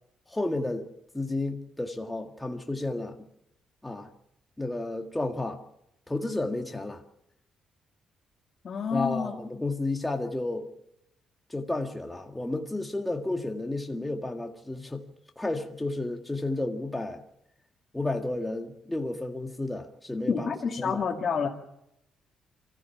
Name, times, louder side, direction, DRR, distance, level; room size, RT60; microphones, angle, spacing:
voice 1, 0.3-0.9 1.1-3.2 3.8-4.1 4.6-5.6 6.1-7.0 8.9-10.7 11.5-15.0 15.4-17.2 17.9-21.0, left 2 dB, 10° left, 1.8 m, -32 dB
voice 2, 8.6-9.3 20.3-21.5, left 6 dB, 45° left, 2.3 m, -28 dB
24.5 x 15.0 x 7.3 m
cardioid pair, 90°, 0 cm